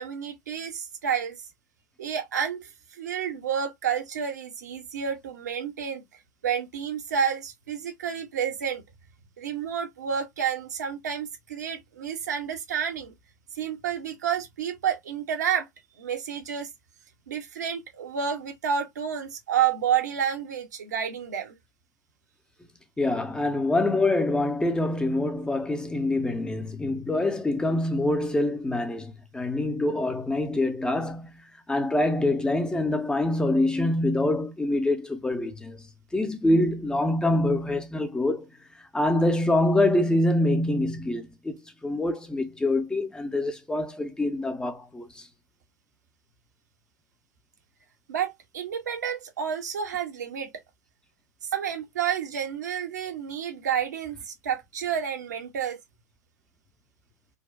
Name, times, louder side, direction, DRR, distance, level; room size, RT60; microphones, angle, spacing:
voice 1, 0.0-1.5 2.0-6.0 6.4-8.8 9.4-13.1 13.5-15.7 16.0-16.7 17.3-21.5 48.1-50.5 51.4-55.8, right 8 dB, 75° right, 1.1 m, -30 dB
voice 2, 23.0-31.4 31.7-35.8 36.1-38.5 38.9-45.3, left 1 dB, 10° left, 0.6 m, -25 dB
3.8 x 2.2 x 2.5 m
hypercardioid pair, 100°, 10 cm